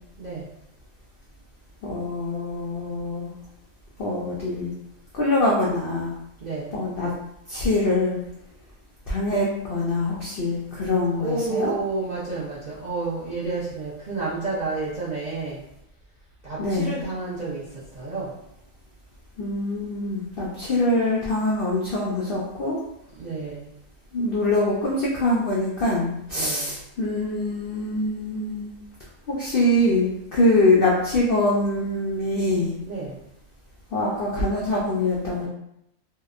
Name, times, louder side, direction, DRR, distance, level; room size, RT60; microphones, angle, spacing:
voice 1, 1.8-3.3 4.0-4.7 5.1-6.1 6.7-7.1 7.5-8.2 9.1-11.7 16.6-16.9 19.4-22.8 24.1-28.7 29.3-32.7 33.9-35.5, left 1 dB, 90° left, -4 dB, 0.4 m, -24 dB
voice 2, 6.4-6.8 11.1-15.6 16.4-18.3 23.1-23.8 26.3-26.8 32.8-33.2, right 3 dB, 70° right, -9 dB, 0.4 m, -30 dB
2.8 x 2.1 x 2.4 m, 0.80 s
omnidirectional pair, 1.5 m